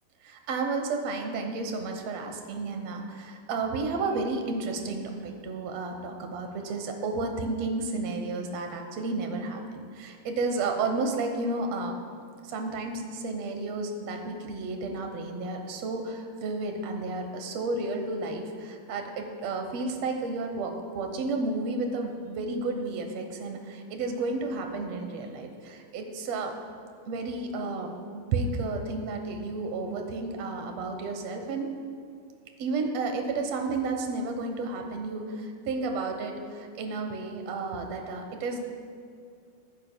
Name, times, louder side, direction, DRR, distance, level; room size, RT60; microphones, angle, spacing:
voice 1, 0.2-12.0 12.4-26.5 27.1-31.7 32.6-38.6, right 3 dB, 65° right, 4 dB, 1.7 m, -32 dB
21.5 x 10.5 x 2.3 m, 2.4 s
omnidirectional pair, 4.1 m